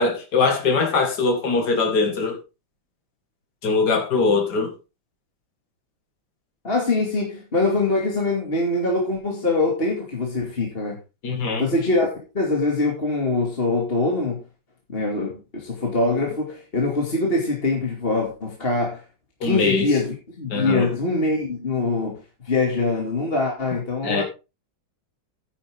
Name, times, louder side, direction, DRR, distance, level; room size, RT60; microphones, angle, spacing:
voice 1, 0.0-2.4 3.6-4.7 11.2-11.6 19.4-19.9 20.5-20.9 24.0-24.2, left 4 dB, 55° left, 2.7 m, -21 dB
voice 2, 6.6-11.0 11.6-14.4 14.9-19.0 19.4-24.2, left 2 dB, 30° left, 2.6 m, -23 dB
10.0 x 10.0 x 3.6 m
omnidirectional pair, 2.1 m